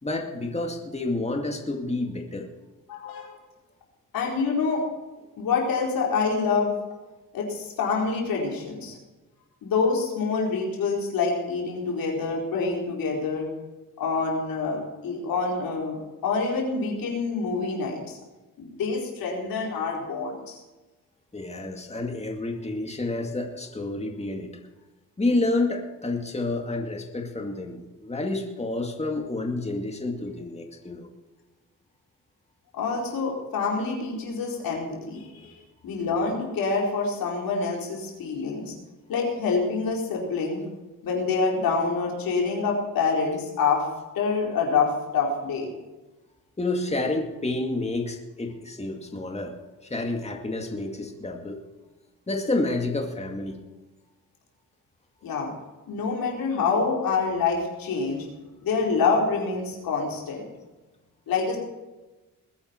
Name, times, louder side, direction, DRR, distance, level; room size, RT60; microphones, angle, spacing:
voice 1, 0.0-2.5 21.3-24.5 25.2-31.1 35.4-35.5 46.6-49.6 49.8-51.6 52.3-53.6, left 2 dB, 20° left, 2 dB, 2.3 m, -29 dB
voice 2, 2.9-3.4 4.1-4.8 5.4-6.7 7.3-9.0 9.6-13.5 14.0-18.2 18.6-20.6 32.7-35.5 35.8-38.7 39.1-40.6 41.0-43.8 44.1-45.7 55.2-55.5 55.9-58.3 58.6-60.5 61.3-61.6, left 4 dB, 90° left, -2 dB, 4.6 m, -26 dB
21.0 x 9.9 x 4.7 m, 1.2 s
cardioid pair, 90°, 34 cm